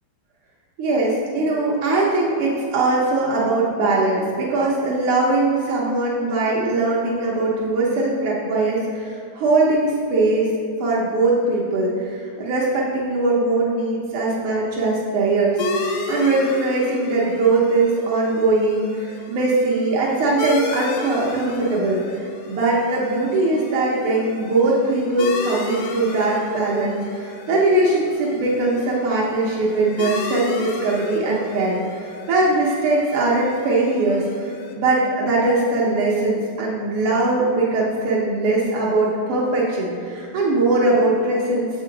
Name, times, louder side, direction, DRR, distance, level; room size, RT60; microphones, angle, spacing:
voice 1, 0.8-10.5 10.8-41.7, right 2 dB, 85° right, -5 dB, 1.8 m, -21 dB
sound 1, 15.6-34.7, left 3 dB, 85° left, 1.7 m, -33 dB
7.5 x 5.5 x 3.8 m, 2.6 s
omnidirectional pair, 2.4 m